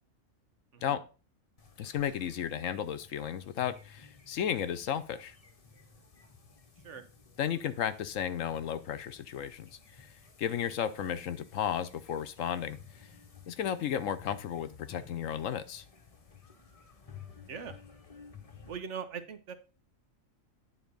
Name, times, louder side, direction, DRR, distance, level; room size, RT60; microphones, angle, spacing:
sound 1, 1.6-18.8, left 6 dB, 30° left, 0.9 m, -55 dB
voice 1, 1.8-5.3 7.4-9.7 10.4-12.8 13.5-15.8, left 9 dB, 70° left, 11 dB, 1.1 m, -33 dB
voice 2, 18.7-19.5, right 6 dB, 60° right, 10 dB, 1.2 m, -41 dB
9.7 x 4.0 x 5.3 m, 0.33 s
omnidirectional pair, 1.4 m